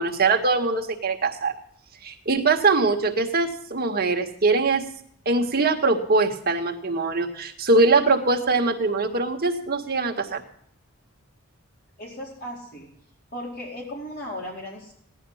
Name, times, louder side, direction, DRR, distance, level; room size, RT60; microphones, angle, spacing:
voice 1, 0.0-1.5 2.0-4.9 5.3-10.4, right 3 dB, 45° right, 3 dB, 1.9 m, -22 dB
voice 2, 12.0-12.9 13.3-14.9, equal, 45° left, -3 dB, 4.5 m, -36 dB
16.5 x 11.5 x 5.8 m, 0.66 s
head